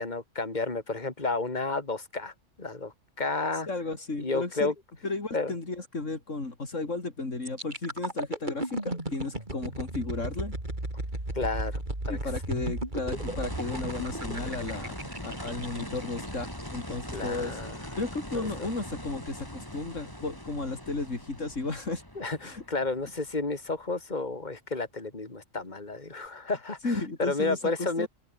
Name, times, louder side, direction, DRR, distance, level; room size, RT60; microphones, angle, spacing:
voice 1, 0.0-2.3 2.6-3.7 4.2-4.7 5.3-5.5 11.3-12.2 15.3-15.4 17.1-17.8 18.3-18.7 22.1-28.1, left 3 dB, 35° left, 3.2 m, -32 dB
voice 2, 3.7-4.7 5.0-10.5 12.1-17.6 18.0-22.0 22.4-22.6 26.8-28.1, left 3 dB, 80° left, 4.1 m, -34 dB
sound 1, 7.4-17.3 17.7-17.9, right 1 dB, 40° right, 5.6 m, -35 dB
sound 2, 13.1-24.0 26.3-26.4, equal, 15° left, 7.9 m, -41 dB
open air
omnidirectional pair, 1.3 m